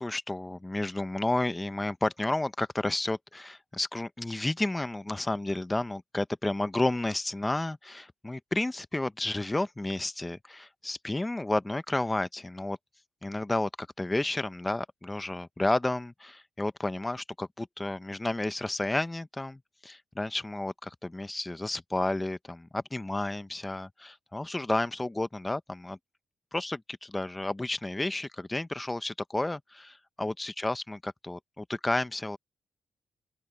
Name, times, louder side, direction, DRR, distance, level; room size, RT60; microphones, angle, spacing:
voice 1, 0.0-12.8 13.2-26.0 26.5-32.4, left 2 dB, 15° left, 0.7 m, -31 dB
open air
cardioid pair, 115°, 0 cm